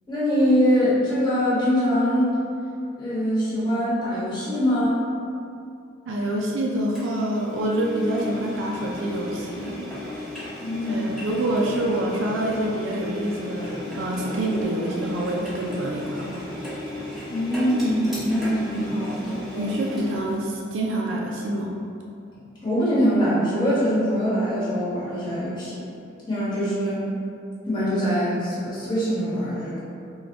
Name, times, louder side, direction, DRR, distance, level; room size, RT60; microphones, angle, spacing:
voice 1, 0.1-2.4 3.0-5.0 10.6-11.2 17.3-19.7 22.6-25.8 26.3-27.0 27.6-29.8, equal, 20° left, -10 dB, 1.0 m, -23 dB
voice 2, 6.1-9.9 10.9-16.4 19.6-21.7, right 1 dB, 75° right, -2 dB, 0.4 m, -26 dB
Engine, 6.9-20.4, left 1 dB, ahead, 0.7 m, -35 dB
3.3 x 2.3 x 3.8 m, 2.6 s
head